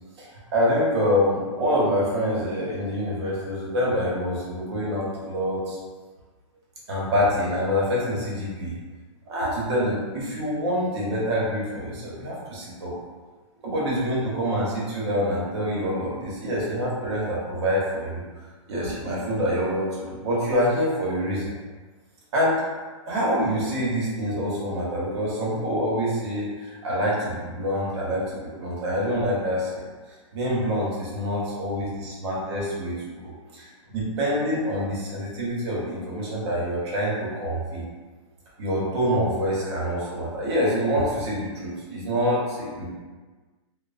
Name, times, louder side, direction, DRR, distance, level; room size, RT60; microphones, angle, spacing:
voice 1, 0.2-5.8 6.9-8.7 9.3-12.9 13.6-18.2 18.7-21.5 22.3-22.6 23.1-37.8 38.6-42.9, equal, 55° right, -5 dB, 0.9 m, -26 dB
2.9 x 2.0 x 2.4 m, 1.4 s
hypercardioid pair, 165°, 17 cm